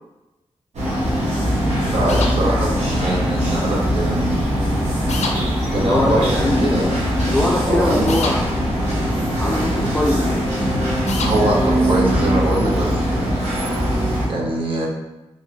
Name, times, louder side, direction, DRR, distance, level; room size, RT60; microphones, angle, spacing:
sound 1, 0.7-14.3, equal, 80° right, 1.0 m, -21 dB
voice 1, 1.8-4.4 5.7-7.0 7.7-8.1 11.2-13.4 14.2-14.9, right 1 dB, 50° right, -3 dB, 0.9 m, -23 dB
sound 2, 2.1-2.3 5.1-5.4 8.1-8.4 11.1-11.3, left 4 dB, 90° left, 0.4 m, -26 dB
voice 2, 5.7-6.9 7.3-8.5 9.4-10.7, left 1 dB, 10° left, -3 dB, 0.4 m, -22 dB
3.0 x 2.8 x 2.5 m, 1.0 s
cardioid pair, 70°, 11 cm